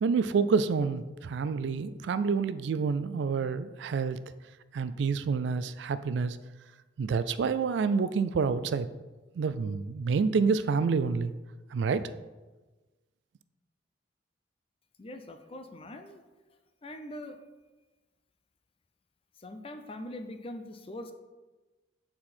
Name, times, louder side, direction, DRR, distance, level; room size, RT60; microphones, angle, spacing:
voice 1, 0.0-4.2 4.7-6.4 7.0-8.9 9.4-11.3 11.7-12.1, right 5 dB, 70° right, 14 dB, 0.3 m, -28 dB
voice 2, 15.0-16.2 16.8-17.4 19.4-21.1, left 1 dB, 30° left, 7 dB, 0.5 m, -42 dB
7.4 x 4.4 x 4.2 m, 1.2 s
head